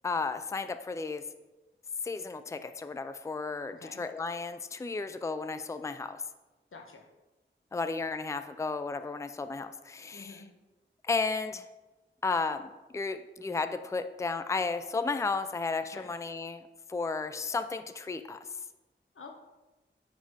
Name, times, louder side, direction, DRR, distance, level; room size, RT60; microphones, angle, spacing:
voice 1, 0.0-1.2 2.0-6.2 7.7-10.3 11.0-11.6 12.2-16.6 16.9-18.4, left 4 dB, 15° left, 10 dB, 0.4 m, -33 dB
voice 2, 3.7-4.0 6.7-7.1 10.1-10.5 15.9-16.1 19.1-19.3, left 4 dB, 90° left, 2 dB, 1.1 m, -48 dB
9.4 x 4.1 x 4.8 m, 1.1 s
wide cardioid pair, 65°, 21 cm